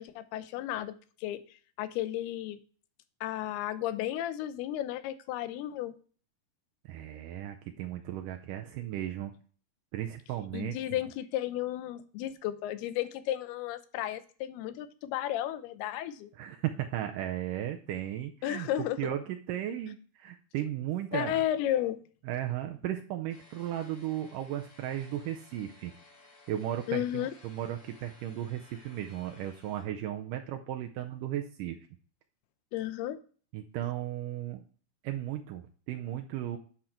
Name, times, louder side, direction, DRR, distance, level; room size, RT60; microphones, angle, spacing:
voice 1, 0.0-1.4 1.8-2.6 3.2-5.9 10.5-16.3 18.4-19.1 21.1-22.0 26.9-27.3 32.7-33.2, left 12 dB, 85° left, 12 dB, 2.7 m, -33 dB
voice 2, 6.9-9.3 9.9-10.8 16.4-18.7 19.0-21.5 22.3-25.9 26.5-31.8 33.5-34.6 35.0-36.6, right 12 dB, 80° right, 5 dB, 1.9 m, -35 dB
sound 1, 23.3-29.8, left 2 dB, 55° left, 2.9 m, -58 dB
10.0 x 5.6 x 4.4 m, 0.42 s
omnidirectional pair, 4.5 m